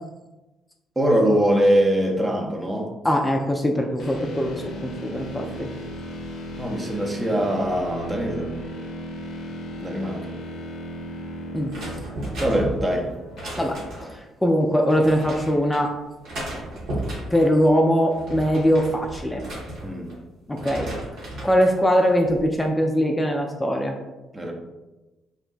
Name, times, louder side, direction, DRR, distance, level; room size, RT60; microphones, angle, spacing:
voice 1, 1.0-2.9 6.6-8.6 9.8-10.4 12.4-13.1 19.8-20.1 24.3-24.5, equal, 25° right, 1 dB, 0.7 m, -22 dB
voice 2, 3.0-5.7 11.5-11.7 13.6-13.8 14.1-15.9 17.3-19.4 20.5-20.9 21.4-24.0, equal, 15° left, 2 dB, 0.4 m, -21 dB
sound 1, 4.0-14.0, equal, 55° left, 0.6 m, -36 dB
sound 2, 11.7-14.2 14.9-15.8 16.2-17.5 18.0-20.2 20.5-21.6 22.0-22.4, right 1 dB, 65° right, 1.1 m, -34 dB
2.8 x 2.1 x 3.8 m, 1.1 s
hypercardioid pair, 45°, 0 cm